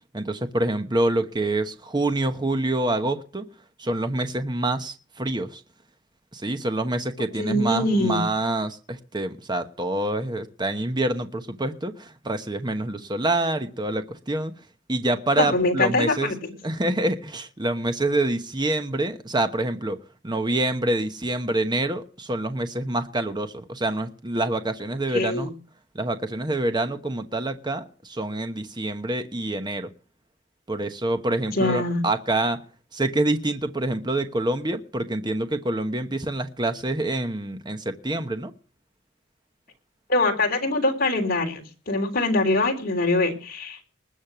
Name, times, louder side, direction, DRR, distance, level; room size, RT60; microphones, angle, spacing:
voice 1, 0.1-3.4 3.8-5.6 6.3-14.5 14.9-16.3 16.6-20.0 20.2-25.5 25.9-29.9 30.7-32.6 32.9-38.5, right 1 dB, 20° right, 1.1 m, -26 dB
voice 2, 7.4-8.2 15.4-16.5 25.1-25.5 31.5-32.0 40.1-43.8, left 2 dB, 50° left, 3.6 m, -23 dB
20.0 x 7.4 x 6.1 m
head